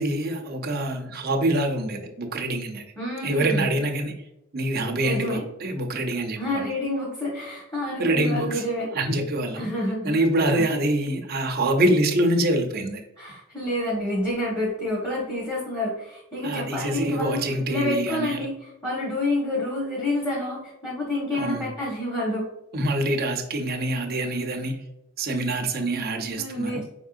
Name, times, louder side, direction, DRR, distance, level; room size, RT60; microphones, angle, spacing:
voice 1, 0.0-2.8 3.2-4.2 4.5-6.7 8.0-8.7 8.9-9.7 10.0-13.0 16.4-18.4 21.3-21.7 22.7-24.8 25.2-26.8, right 1 dB, 45° right, 3 dB, 0.6 m, -25 dB
voice 2, 3.0-3.7 5.0-5.4 6.4-8.9 9.6-10.1 10.5-10.6 13.2-18.6 18.8-22.5 26.3-26.8, left 1 dB, 15° left, -7 dB, 1.2 m, -28 dB
5.3 x 3.6 x 2.4 m, 0.89 s
head